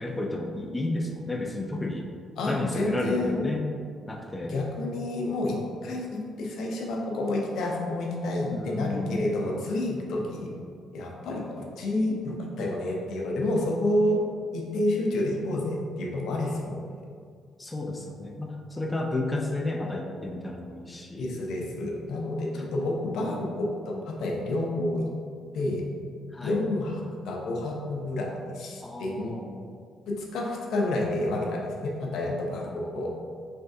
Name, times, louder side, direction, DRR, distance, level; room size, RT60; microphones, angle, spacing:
voice 1, 0.0-2.1 2.5-3.6 4.1-4.6 8.5-9.3 17.6-21.3 22.5-22.7 23.0-23.5 26.3-26.7 28.8-29.6, left 2 dB, 15° left, 0 dB, 0.4 m, -32 dB
voice 2, 2.4-3.5 4.5-10.5 10.9-14.2 14.5-17.0 21.2-25.1 25.5-25.8 26.4-29.4 30.1-33.1, left 1 dB, 75° left, -1 dB, 0.6 m, -29 dB
4.2 x 3.2 x 2.6 m, 2.1 s
cardioid pair, 85°, 0 cm